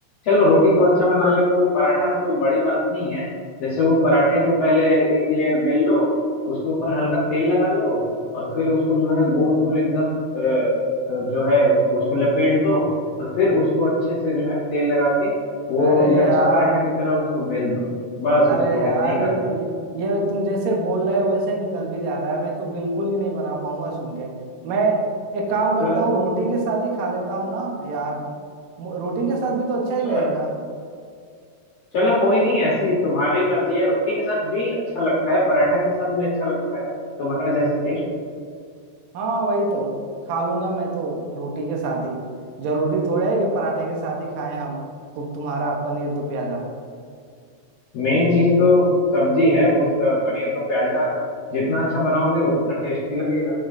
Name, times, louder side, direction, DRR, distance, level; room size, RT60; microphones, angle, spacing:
voice 1, 0.2-3.2 3.6-6.1 6.5-8.0 8.3-10.7 11.1-12.9 13.2-15.3 15.7-17.9 18.2-19.3 25.8-26.0 30.0-30.2 31.9-36.9 37.2-38.0 47.9-51.1 51.5-53.5, left 1 dB, 60° left, -7 dB, 1.9 m, -20 dB
voice 2, 15.8-16.8 18.4-19.7 19.9-24.3 24.6-28.2 28.8-30.5 39.1-39.9 40.3-42.2 42.6-44.8 45.2-46.7, right 2 dB, 80° right, 0 dB, 2.5 m, -24 dB
8.2 x 6.4 x 2.6 m, 2.2 s
omnidirectional pair, 3.8 m